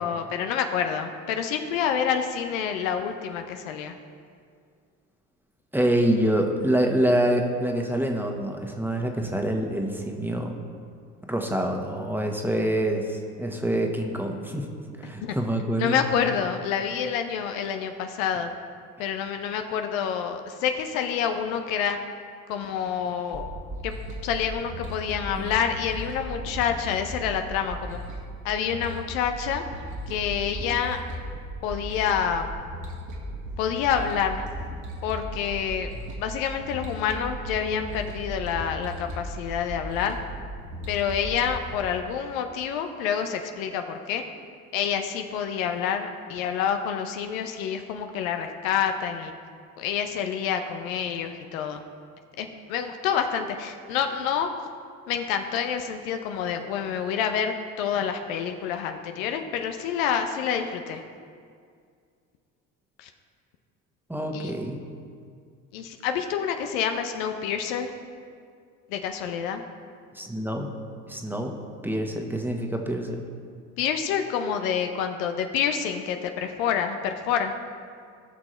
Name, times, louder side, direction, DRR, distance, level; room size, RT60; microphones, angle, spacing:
voice 1, 0.0-3.9 15.2-15.3 15.8-18.5 19.0-22.0 22.5-23.5 23.8-23.9 24.2-28.0 28.4-29.6 30.1-31.0 31.6-32.5 33.6-34.4 35.0-35.9 36.2-40.2 40.9-44.2 44.7-49.3 49.8-51.8 52.4-54.5 55.1-61.0 63.0-63.1 64.3-64.5 65.7-67.9 68.9-69.6 73.8-77.5, left 8 dB, 75° left, 6 dB, 0.8 m, -28 dB
voice 2, 5.7-10.6 11.3-14.7 15.0-16.0 25.4-25.5 64.1-64.8 70.1-70.7 71.1-71.6 71.8-73.2, right 1 dB, 5° right, 2 dB, 1.4 m, -26 dB
sound 1, 23.3-41.8, right 1 dB, 45° right, 1.8 m, -37 dB
17.5 x 6.1 x 3.3 m, 2.2 s
hypercardioid pair, 60°, 41 cm